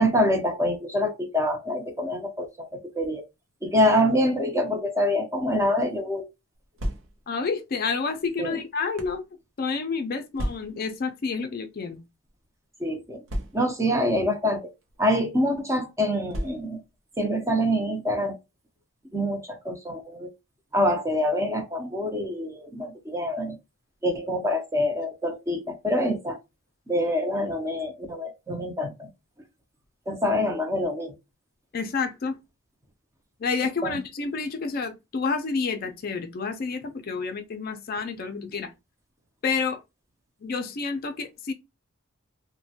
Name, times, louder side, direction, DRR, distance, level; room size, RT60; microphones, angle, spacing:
voice 1, 0.0-3.2 3.6-6.3 8.4-8.6 12.8-13.2 13.5-14.6 15.0-16.8 17.2-18.4 19.1-20.3 20.7-23.6 24.0-26.4 26.9-29.1 30.1-31.1 33.8-34.0, equal, 15° right, 0.5 m, -25 dB
sound 1, 6.5-7.4 8.2-9.2 10.3-11.0 11.8-12.0 12.3-12.4 13.3-13.9 14.8-15.0 16.3-16.9, equal, 70° right, 0.6 m, -34 dB
voice 2, 7.3-9.2 9.6-12.0 31.7-32.4 33.4-38.7 39.4-39.8 40.4-41.5, left 4 dB, 45° left, 0.4 m, -29 dB
3.0 x 2.1 x 2.7 m
head